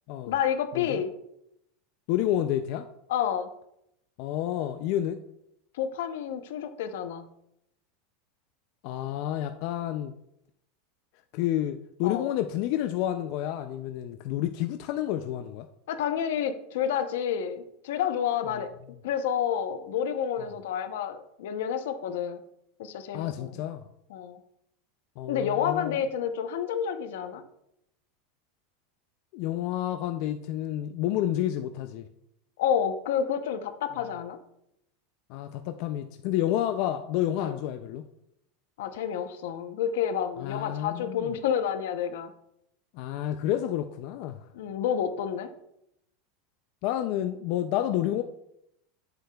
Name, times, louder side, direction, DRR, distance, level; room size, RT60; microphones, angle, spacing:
voice 1, 0.3-1.1 3.1-3.5 5.8-7.3 12.0-12.3 15.9-18.7 19.0-22.4 22.8-23.6 24.1-24.4 25.3-27.4 32.6-34.4 37.4-37.6 38.8-42.3 44.5-45.5, left 8 dB, 75° left, 9 dB, 0.7 m, -29 dB
voice 2, 2.1-2.9 4.2-5.2 8.8-10.1 11.3-15.7 18.5-18.6 23.1-23.8 25.2-26.0 29.3-32.1 35.3-38.0 40.4-41.3 42.9-44.5 46.8-48.2, left 12 dB, 45° left, 7 dB, 0.3 m, -29 dB
8.5 x 7.8 x 2.3 m, 0.78 s
supercardioid pair, 175°, 0 cm